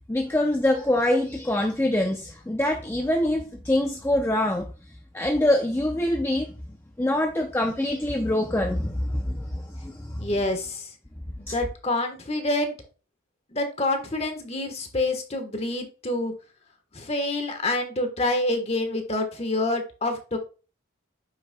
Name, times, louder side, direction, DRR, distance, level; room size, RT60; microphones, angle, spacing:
voice 1, 0.1-4.7 5.1-6.5 7.0-10.3 11.5-11.6, left 1 dB, 10° left, 3 dB, 0.5 m, -24 dB
voice 2, 10.2-10.9 11.4-12.7 13.5-16.3 16.9-20.4, left 2 dB, 30° left, 6 dB, 1.3 m, -27 dB
9.0 x 6.3 x 2.2 m, 0.34 s
head